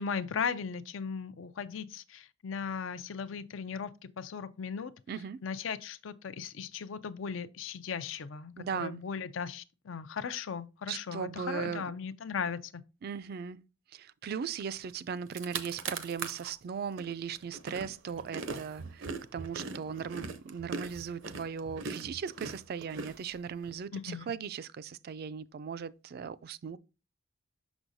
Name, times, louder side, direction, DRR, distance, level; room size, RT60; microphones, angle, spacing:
voice 1, 0.0-4.9 5.4-12.8 23.9-24.3, left 6 dB, 75° left, 0.5 m, -37 dB
voice 2, 5.1-5.4 8.6-9.0 10.9-11.8 13.0-13.6 13.9-26.8, right 6 dB, 50° right, 0.3 m, -38 dB
sound 1, 14.9-15.0 15.2-16.5 17.0-23.7, right 4 dB, 70° right, 0.7 m, -40 dB
6.2 x 6.1 x 2.6 m
head